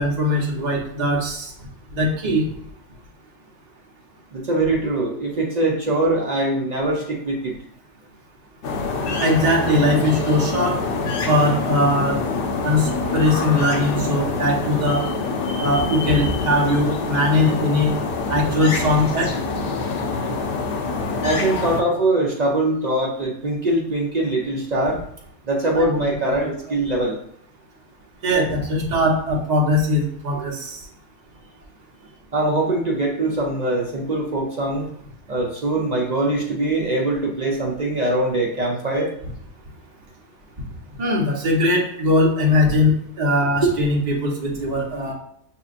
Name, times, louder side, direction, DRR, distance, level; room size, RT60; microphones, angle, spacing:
voice 1, 0.0-1.5 1.9-2.5 9.2-10.8 11.3-12.2 12.6-15.0 15.6-17.9 18.3-19.3 25.7-26.0 26.4-26.5 28.2-30.8 41.0-45.1, left 1 dB, 35° right, -2 dB, 0.9 m, -20 dB
voice 2, 4.3-7.6 21.2-25.0 25.4-27.2 32.3-34.9 35.3-39.1 43.6-43.7, right 2 dB, 55° right, -1 dB, 0.4 m, -22 dB
sound 1, 8.6-21.8, left 3 dB, 55° left, 0.6 m, -25 dB
6.1 x 2.8 x 2.4 m, 0.67 s
omnidirectional pair, 1.4 m